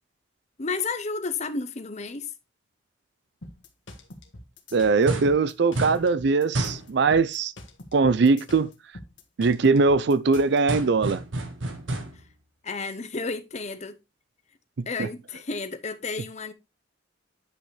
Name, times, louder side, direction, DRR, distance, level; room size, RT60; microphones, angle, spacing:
voice 1, 0.6-2.3 12.1-12.2 12.6-14.0 14.9-16.5, left 4 dB, 35° left, 0.8 m, -32 dB
sound 1, 3.4-10.6, left 1 dB, 70° left, 1.5 m, -45 dB
voice 2, 4.7-7.5 7.9-8.7 9.4-11.2 15.0-15.1, right 4 dB, 60° right, 0.5 m, -21 dB
sound 2, 5.1-5.4 5.7-6.1 6.5-6.9 10.7-12.3, right 1 dB, 85° right, 1.6 m, -30 dB
9.1 x 5.5 x 3.2 m
head